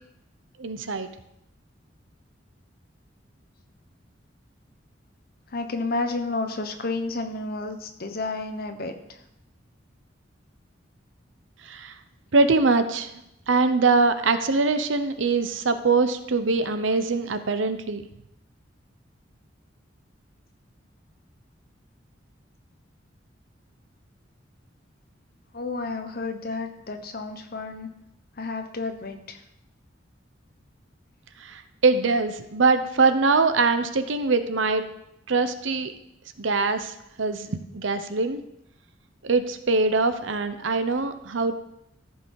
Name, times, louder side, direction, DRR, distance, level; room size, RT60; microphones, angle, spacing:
voice 1, 0.6-1.1 11.6-12.0 12.3-13.1 13.5-18.0 31.4-34.8 35.3-35.9 36.4-38.4 39.2-41.6, right 3 dB, 80° right, 10 dB, 0.8 m, -23 dB
voice 2, 5.5-9.2 25.5-27.9 28.4-29.4, left 3 dB, 50° left, 6 dB, 1.1 m, -31 dB
14.0 x 5.5 x 4.8 m, 0.81 s
head